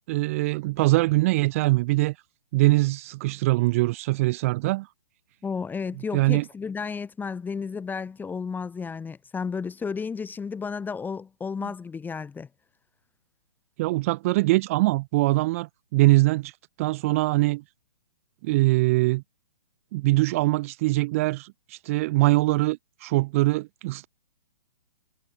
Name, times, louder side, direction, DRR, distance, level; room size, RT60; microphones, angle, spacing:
voice 1, 0.1-2.1 2.5-4.9 6.1-6.4 11.6-11.7 13.8-16.5 16.8-17.6 18.4-19.2 19.9-24.1, right 21 dB, 20° right, 0.3 m, -23 dB
voice 2, 5.4-12.5, left 5 dB, 10° left, 1.9 m, -32 dB
hypercardioid pair, 140°, 21 cm